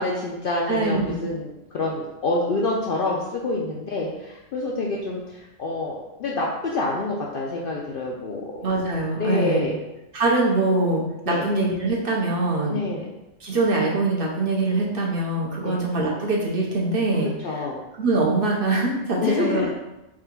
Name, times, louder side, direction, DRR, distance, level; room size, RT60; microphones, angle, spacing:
voice 1, 0.0-8.6 9.2-9.8 11.3-11.5 12.7-13.1 15.6-15.8 17.4-17.8 19.2-19.7, left 2 dB, 65° left, -2 dB, 0.6 m, -27 dB
voice 2, 0.7-1.3 8.6-9.7 10.1-12.8 13.4-17.3 18.0-19.7, right 2 dB, 55° right, -2 dB, 0.8 m, -23 dB
3.5 x 2.4 x 4.4 m, 0.96 s
omnidirectional pair, 1.3 m